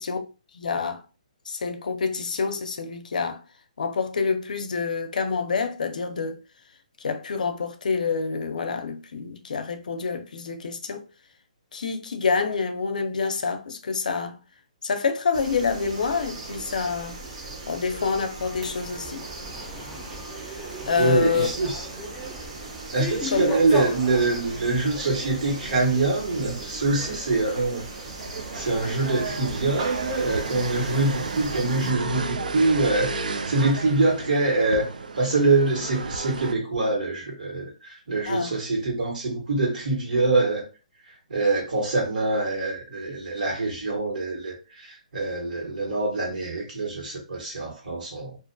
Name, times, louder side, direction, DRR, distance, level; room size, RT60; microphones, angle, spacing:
voice 1, 0.5-1.0 1.5-3.4 3.8-6.4 7.0-11.0 11.7-14.4 14.8-17.2 17.7-19.2 20.4-20.6 20.9-21.5 23.3-23.6 38.3-38.5, left 5 dB, 75° left, 0.5 m, -27 dB
sound 1, 15.3-31.9, right 3 dB, 50° right, 0.8 m, -38 dB
sound 2, 18.4-31.1, equal, ahead, 0.5 m, -38 dB
voice 2, 21.0-21.9 22.9-27.9 28.5-34.9 35.2-40.7 41.3-48.4, right 3 dB, 75° right, 1.2 m, -24 dB
sound 3, 28.2-36.5, right 4 dB, 90° right, 0.4 m, -33 dB
2.4 x 2.2 x 2.5 m
hypercardioid pair, 160°, 4 cm